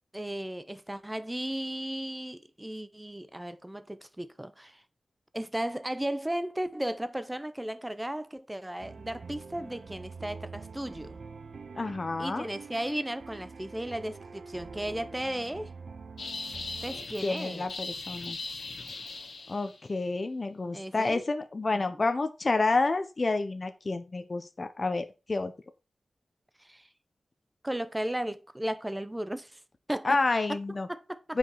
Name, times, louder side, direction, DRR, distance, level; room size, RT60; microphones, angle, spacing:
voice 1, 0.1-4.8 5.3-11.2 12.2-15.7 16.8-17.7 20.7-21.2 21.7-21.9 26.6-26.9 27.6-29.6 29.9-30.2 30.5-30.6 30.9-31.4, right 1 dB, 10° right, 0.7 m, -35 dB
sound 1, 8.8-17.1, right 4 dB, 60° right, 0.8 m, -45 dB
voice 2, 11.8-12.5 17.2-18.4 19.5-25.5 30.0-30.9 31.3-31.4, left 3 dB, 35° left, 0.9 m, -29 dB
sound 2, 16.2-19.9, left 3 dB, 70° left, 2.0 m, -39 dB
8.7 x 5.1 x 4.7 m
wide cardioid pair, 130°, 0 cm